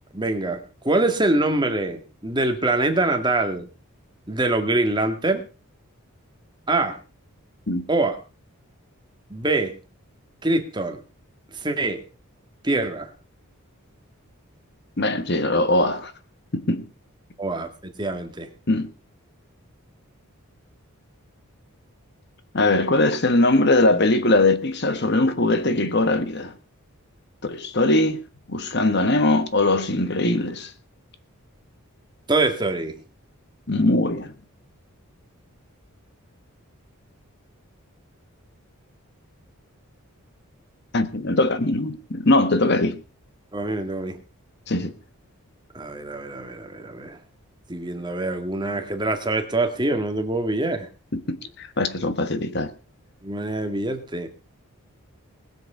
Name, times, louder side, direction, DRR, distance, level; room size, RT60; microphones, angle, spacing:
voice 1, 0.1-3.7 4.3-5.4 6.7-7.0 7.9-8.2 9.3-9.7 10.4-11.0 11.5-12.0 12.6-13.1 17.4-17.7 18.0-18.5 32.3-33.0 43.5-44.2 45.7-47.2 47.7-50.9 53.2-54.3, right 2 dB, 20° right, 1.9 m, -24 dB
voice 2, 15.0-16.1 16.5-16.8 18.7-18.9 22.5-26.6 27.4-28.2 28.5-30.7 33.7-34.3 40.9-43.0 44.7-44.9 51.1-52.7, left 2 dB, 50° left, 1.3 m, -21 dB
20.5 x 7.9 x 5.6 m
head